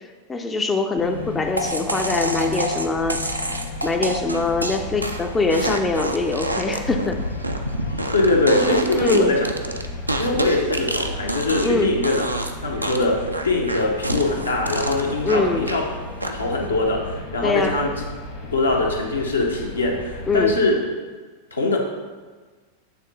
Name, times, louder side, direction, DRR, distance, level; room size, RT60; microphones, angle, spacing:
voice 1, 0.3-7.2 8.9-9.3 11.6-11.9 15.2-15.7 17.4-17.8 20.3-20.5, left 3 dB, 15° left, 5 dB, 0.4 m, -23 dB
sound 1, 1.0-20.6, left 2 dB, 50° left, 1.1 m, -35 dB
sound 2, 1.6-11.8 12.0-12.5 12.8-15.8 16.2-16.6, right 1 dB, 85° right, 0.4 m, -28 dB
voice 2, 8.1-9.8 10.2-12.3 12.6-15.9 16.2-17.9 18.5-20.9 21.5-21.8, left 2 dB, 80° left, 0 dB, 0.9 m, -22 dB
8.2 x 3.6 x 3.8 m, 1.4 s
figure-of-eight pair, 90°, 0 cm